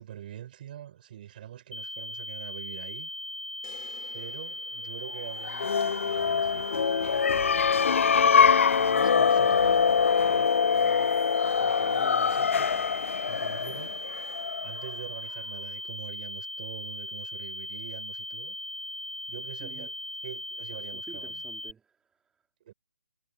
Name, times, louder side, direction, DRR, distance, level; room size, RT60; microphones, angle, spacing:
voice 1, 0.0-3.1 4.1-7.7 8.8-10.0 10.3-11.2 11.6-12.8 13.3-14.0 14.6-18.6 19.3-19.9 20.2-21.4 22.6-22.7, right 11 dB, 40° right, 6.4 m, -44 dB
sound 1, 1.7-21.7, left 1 dB, 85° left, 4.4 m, -38 dB
sound 2, 3.6-5.9, left 18 dB, 30° left, 5.1 m, -54 dB
sound 3, 5.4-14.9, left 6 dB, 65° left, 0.4 m, -24 dB
voice 2, 12.0-12.3 19.6-19.9 20.9-22.5, right 6 dB, 10° right, 3.7 m, -51 dB
figure-of-eight pair, 150°, 8 cm